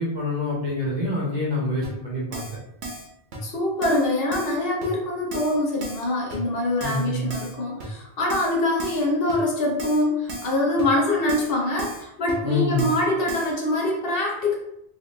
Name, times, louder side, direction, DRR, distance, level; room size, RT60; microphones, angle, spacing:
voice 1, 0.0-2.4 6.8-7.3 12.4-12.9, left 2 dB, 45° right, -5 dB, 1.0 m, -26 dB
Keyboard (musical), 1.8-1.9 2.3-2.6 2.8-3.1 3.3-3.4 3.8-4.0 4.3-4.5 4.8-4.9 5.3-5.5 5.8-6.0 6.3-6.4 6.8-7.0 7.3-7.5 7.8-7.9 8.3-8.5 8.8-9.0 9.3-9.4 9.8-10.0 10.3-10.5 10.8-10.9 11.3-11.5 11.8-12.0 12.3-12.4 12.8-13.0 13.3-13.5, right 2 dB, 75° right, 1.1 m, -35 dB
voice 2, 3.4-14.5, left 1 dB, 60° left, -2 dB, 0.9 m, -24 dB
3.0 x 2.7 x 3.1 m, 0.82 s
omnidirectional pair, 1.1 m